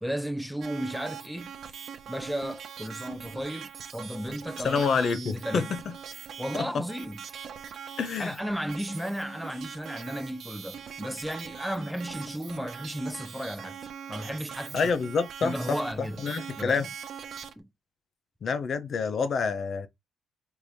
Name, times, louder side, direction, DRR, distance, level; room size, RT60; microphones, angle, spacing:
voice 1, 0.0-1.5 2.1-4.8 5.1-5.7 6.4-7.2 8.2-13.8 14.1-14.9 15.4-16.2 16.6-16.9 17.6-17.7, equal, ahead, 0.5 m, -34 dB
sound 1, 0.6-17.5, right 7 dB, 60° right, 0.7 m, -42 dB
voice 2, 4.6-5.8 6.7-6.8 8.0-8.4 14.7-16.9 18.4-19.9, left 5 dB, 55° left, 0.6 m, -28 dB
4.5 x 3.3 x 2.7 m
cardioid pair, 90°, 0 cm